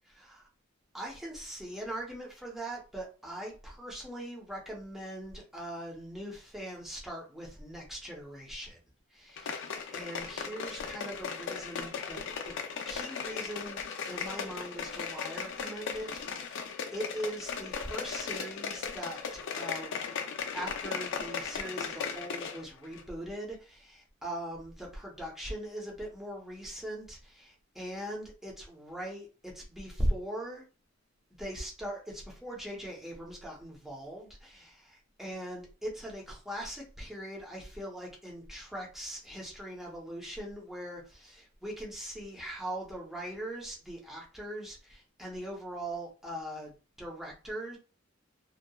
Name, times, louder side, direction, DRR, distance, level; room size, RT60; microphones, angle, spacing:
voice 1, 0.1-0.5 0.9-8.8 9.1-12.2 12.4-12.5 12.9-13.8 14.1-20.1 20.5-30.6 31.4-46.7 47.0-47.8, right 1 dB, ahead, -2 dB, 0.7 m, -40 dB
sound 1, 9.4-22.6 22.9-23.0, left 6 dB, 65° left, 0.4 m, -37 dB
2.7 x 2.2 x 2.2 m, 0.34 s
head